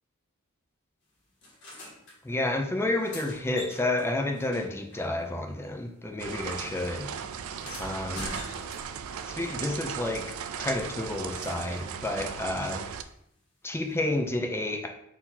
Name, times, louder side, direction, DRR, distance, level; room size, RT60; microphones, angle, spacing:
sound 1, 1.4-2.2 2.8-5.7 6.0-9.2 10.6-11.9 13.9-14.0, left 1 dB, 55° left, 1.8 m, -46 dB
voice 1, 2.2-7.1 7.8-8.3 9.2-10.2 10.6-12.8 13.6-14.9, left 2 dB, 10° left, 3 dB, 0.4 m, -30 dB
sound 2, 6.2-13.0, right 7 dB, 65° right, 0.3 m, -37 dB
4.1 x 2.8 x 3.9 m, 0.76 s
head